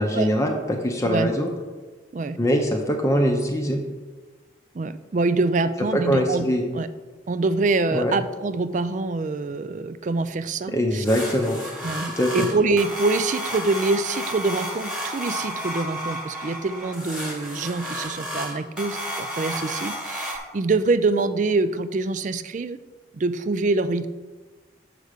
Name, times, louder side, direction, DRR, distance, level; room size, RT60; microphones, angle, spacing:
voice 1, 0.0-1.5 2.4-3.8 5.9-6.6 7.9-8.1 10.7-11.6 12.2-12.5, equal, 15° left, 2 dB, 0.7 m, -22 dB
voice 2, 4.7-6.5 6.7-6.9 7.3-11.1 11.8-22.8 23.1-24.1, right 3 dB, 40° right, 13 dB, 0.4 m, -25 dB
sound 1, 11.0-20.4, equal, 5° right, 1.3 m, -32 dB
6.7 x 4.9 x 6.5 m, 1.3 s
head